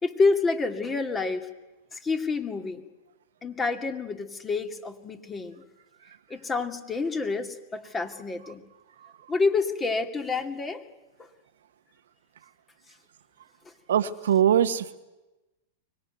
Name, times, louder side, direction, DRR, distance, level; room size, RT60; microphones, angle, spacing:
voice 1, 0.0-1.5 1.9-2.8 3.4-5.6 6.3-8.6 9.3-10.8 11.2-11.3, left 4 dB, 20° left, 7 dB, 2.4 m, -28 dB
voice 2, 13.9-15.0, right 9 dB, 75° right, 10 dB, 1.2 m, -22 dB
24.0 x 20.0 x 9.2 m, 1.1 s
hypercardioid pair, 105°, 0 cm